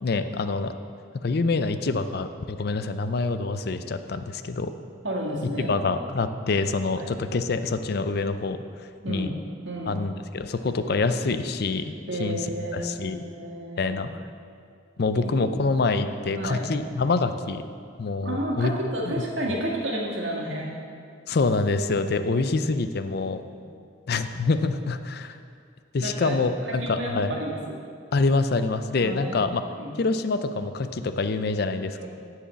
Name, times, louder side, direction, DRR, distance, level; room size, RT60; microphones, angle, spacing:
voice 1, 0.0-0.7 1.1-4.7 5.6-8.6 9.1-9.3 9.9-12.4 12.7-13.2 13.8-14.1 15.0-17.6 18.0-18.7 19.5-19.6 21.3-23.4 24.1-25.4 25.9-27.4 28.1-29.6 30.0-32.1, left 3 dB, 55° left, 10 dB, 0.5 m, -26 dB
voice 2, 5.0-5.8 7.0-7.2 9.0-9.3 9.6-10.0 12.1-14.0 15.1-15.6 16.3-16.7 18.2-20.7 23.5-23.6 26.0-26.4 26.6-27.8 29.0-29.4 29.7-29.9 32.0-32.1, right 1 dB, 85° right, -2 dB, 1.8 m, -31 dB
10.0 x 4.8 x 7.5 m, 2.3 s
head